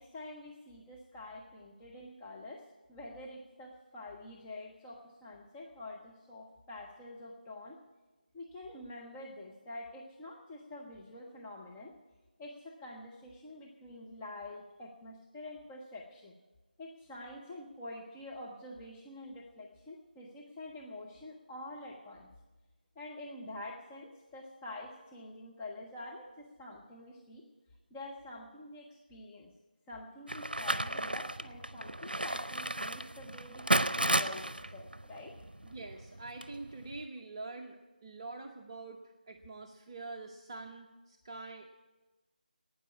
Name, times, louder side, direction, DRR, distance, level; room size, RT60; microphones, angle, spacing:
voice 1, 0.0-7.8 8.3-11.9 12.4-16.3 16.8-22.3 23.0-27.5 27.9-29.5 29.9-35.3, left 2 dB, 10° left, -3 dB, 0.6 m, -47 dB
sound 1, 30.3-37.0, right 1 dB, 80° right, 0.6 m, -34 dB
voice 2, 35.6-41.7, right 3 dB, 30° right, 2 dB, 0.7 m, -45 dB
12.0 x 9.4 x 8.4 m, 1.2 s
figure-of-eight pair, 160°, 5 cm